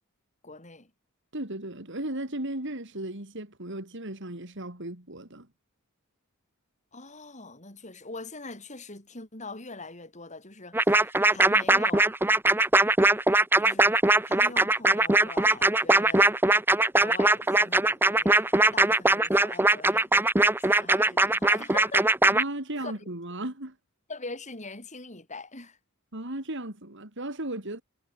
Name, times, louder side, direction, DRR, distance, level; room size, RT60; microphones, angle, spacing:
voice 1, 0.4-0.9 6.9-12.2 13.6-16.3 17.0-20.1 20.6-22.2 22.8-23.1 24.1-25.8, left 3 dB, 35° left, 5.6 m, -42 dB
voice 2, 1.3-5.5 22.3-23.8 26.1-27.8, right 1 dB, 60° right, 4.2 m, -35 dB
sound 1, 10.7-22.4, right 2 dB, 10° right, 0.8 m, -21 dB
head